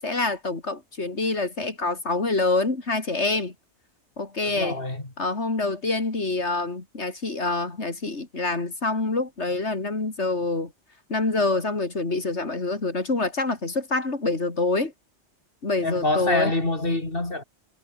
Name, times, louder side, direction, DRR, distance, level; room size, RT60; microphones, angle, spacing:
voice 1, 0.0-3.5 4.2-4.8 5.2-10.7 11.1-14.9 15.6-16.5, left 3 dB, 85° left, 3.7 m, -26 dB
voice 2, 4.4-5.1 15.8-17.4, left 2 dB, 55° left, 4.8 m, -26 dB
omnidirectional pair, 1.1 m